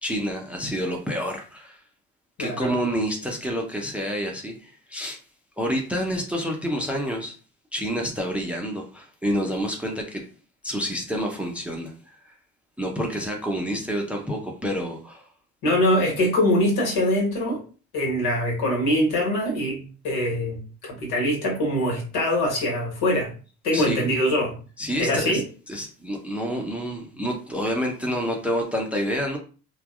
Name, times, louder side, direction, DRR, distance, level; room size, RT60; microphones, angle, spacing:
voice 1, 0.0-1.8 2.4-5.2 5.6-7.3 7.7-10.2 10.6-12.3 12.8-15.3 23.7-24.1 24.8-25.4 25.7-29.4, equal, 5° right, 0.7 m, -28 dB
voice 2, 2.4-2.7 15.6-17.6 17.9-23.3 23.6-24.6 25.0-25.4, left 1 dB, 60° left, 1.4 m, -23 dB
3.4 x 2.1 x 2.4 m
hypercardioid pair, 55°, 42 cm